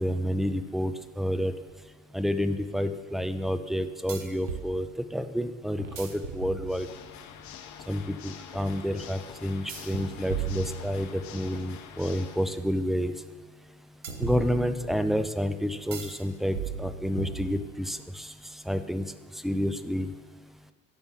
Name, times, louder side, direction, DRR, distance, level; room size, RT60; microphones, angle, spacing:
voice 1, 0.0-1.5 2.1-6.9 7.9-13.1 14.2-19.1 19.3-20.1, equal, ahead, 10 dB, 0.4 m, -29 dB
sound 1, 1.7-1.8 4.1-4.7 5.8-7.1 9.7-11.4 14.0-15.0 15.9-16.2 16.5-17.9, right 5 dB, 90° right, 0.7 m, -37 dB
Water / Mechanisms, 6.6-12.6, left 9 dB, 50° left, 0.8 m, -46 dB
10.5 x 6.8 x 4.2 m, 1.5 s
figure-of-eight pair, 55°, 38 cm